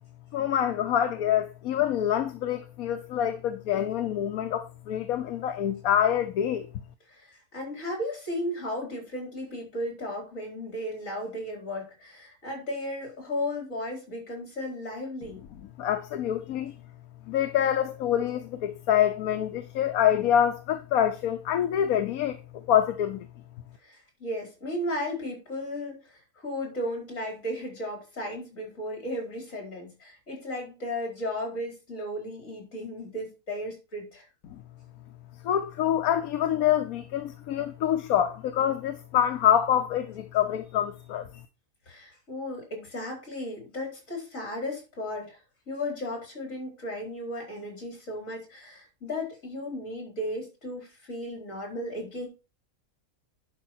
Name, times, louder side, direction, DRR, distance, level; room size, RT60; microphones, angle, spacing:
voice 1, 0.3-6.7 15.8-16.7 17.3-23.3 34.5-34.6 35.4-41.4, left 10 dB, 75° left, 1.2 m, -26 dB
voice 2, 7.1-15.4 23.8-34.3 41.9-45.4 45.7-52.3, left 1 dB, 60° left, 4.7 m, -35 dB
11.0 x 5.3 x 4.4 m
omnidirectional pair, 1.6 m